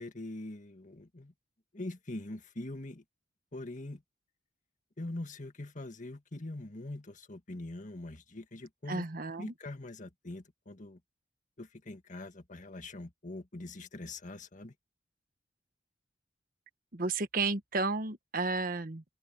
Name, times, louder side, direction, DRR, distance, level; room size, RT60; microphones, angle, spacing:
voice 1, 0.0-1.3 1.7-3.0 3.5-4.0 5.0-9.0 9.4-11.0 11.6-14.7, left 2 dB, 45° left, 1.8 m, -43 dB
voice 2, 8.9-9.5 16.9-19.0, right 3 dB, 55° right, 1.3 m, -32 dB
open air
head